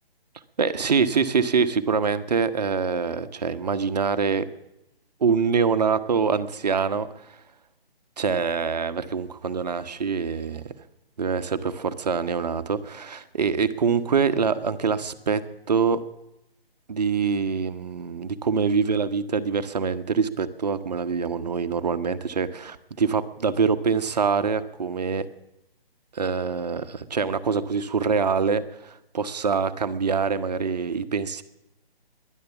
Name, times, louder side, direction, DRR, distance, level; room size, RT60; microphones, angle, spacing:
voice 1, 0.6-4.4 5.2-7.1 8.2-10.7 11.2-15.4 15.7-16.0 16.9-25.3 26.1-31.4, right 5 dB, 40° right, 11 dB, 1.0 m, -25 dB
17.0 x 11.0 x 7.0 m, 0.88 s
figure-of-eight pair, 145°, 30 cm